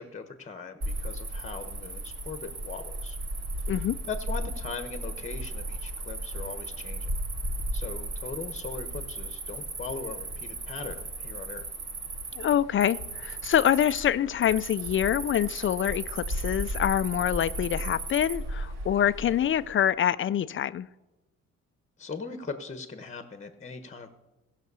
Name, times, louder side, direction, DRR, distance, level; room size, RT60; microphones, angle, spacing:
voice 1, 0.0-3.2 3.7-7.1 7.7-11.6 22.0-24.1, left 4 dB, 25° left, 9 dB, 1.0 m, -40 dB
Cricket, 0.8-19.7, right 1 dB, 60° right, 2.1 m, -35 dB
voice 2, 12.4-20.9, left 10 dB, 45° left, 16 dB, 0.4 m, -25 dB
15.0 x 5.9 x 6.8 m, 1.0 s
cardioid pair, 90°, 30 cm